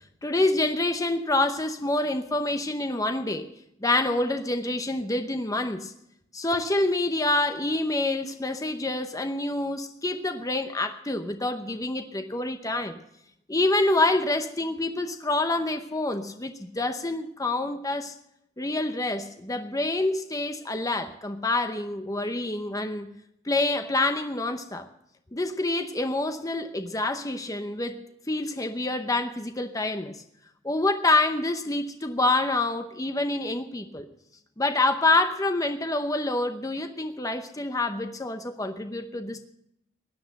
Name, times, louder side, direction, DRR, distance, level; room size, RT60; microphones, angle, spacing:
voice 1, 0.2-3.5 3.8-5.9 6.3-13.0 13.5-18.1 18.6-23.1 23.5-24.9 25.3-27.9 28.3-30.2 30.6-34.1 34.6-39.4, left 2 dB, 15° left, 7 dB, 0.8 m, -27 dB
16.5 x 10.5 x 6.4 m, 0.77 s
head